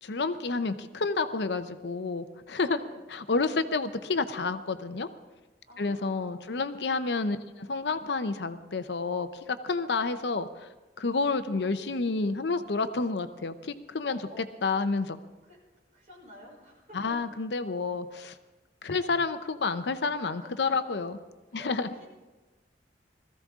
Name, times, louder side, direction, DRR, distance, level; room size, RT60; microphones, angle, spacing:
voice 1, 0.0-2.8 3.1-5.1 5.8-10.7 11.0-15.2 16.9-18.3 18.8-21.2 21.5-21.9, left 4 dB, 75° left, 11 dB, 0.7 m, -30 dB
voice 2, 5.7-6.6 14.1-14.4 15.4-15.6 15.9-17.2 20.2-20.9 21.5-22.1, left 1 dB, 45° right, -4 dB, 5.8 m, -50 dB
20.0 x 14.5 x 3.7 m, 1.2 s
head